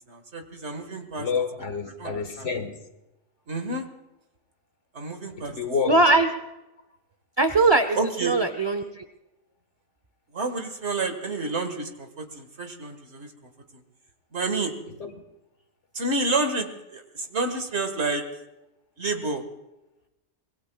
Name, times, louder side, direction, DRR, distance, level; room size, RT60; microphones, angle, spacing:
voice 1, 0.1-1.3 2.0-2.5 3.5-3.9 4.9-5.6 8.0-8.4 10.3-13.8 14.3-14.7 15.9-18.2 19.0-19.4, right 3 dB, 55° right, 1.9 m, -29 dB
voice 2, 1.2-2.8 5.4-6.0 15.0-15.1, left 5 dB, 60° left, 1.8 m, -29 dB
voice 3, 5.9-6.3 7.4-9.0, right 2 dB, 30° right, 0.5 m, -21 dB
25.5 x 21.0 x 2.3 m
omnidirectional pair, 1.4 m